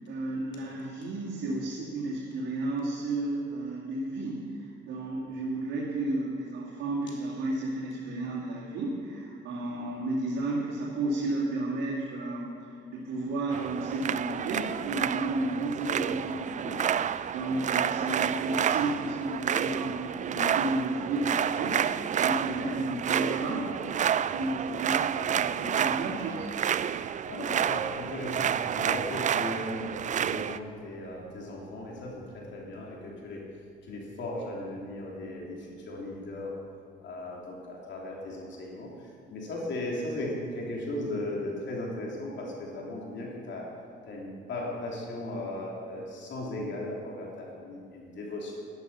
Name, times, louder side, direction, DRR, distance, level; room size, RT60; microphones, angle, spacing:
voice 1, 0.1-4.4 4.8-21.9 22.2-23.7 24.1-26.5, right 2 dB, 85° right, -6 dB, 2.3 m, -32 dB
sound 1, 13.5-30.6, right 9 dB, 40° right, 0.4 m, -30 dB
voice 2, 27.2-33.4 33.8-36.5 37.0-38.9 39.3-43.6 44.0-48.6, left 1 dB, 65° left, -2 dB, 3.2 m, -37 dB
12.0 x 11.5 x 5.6 m, 2.3 s
cardioid pair, 90°, 20 cm